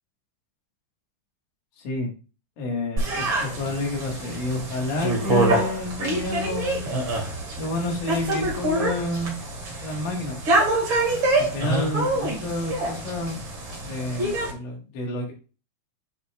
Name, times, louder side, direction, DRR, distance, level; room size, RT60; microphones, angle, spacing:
voice 1, 2.6-6.9 7.6-9.3 9.8-10.4 11.4-13.4 13.8-15.3, left 2 dB, 80° left, -1 dB, 3.0 m, -29 dB
sound 1, 3.0-14.5, right 2 dB, 45° right, 2.3 m, -26 dB
8.5 x 5.1 x 2.3 m, 0.35 s
omnidirectional pair, 3.5 m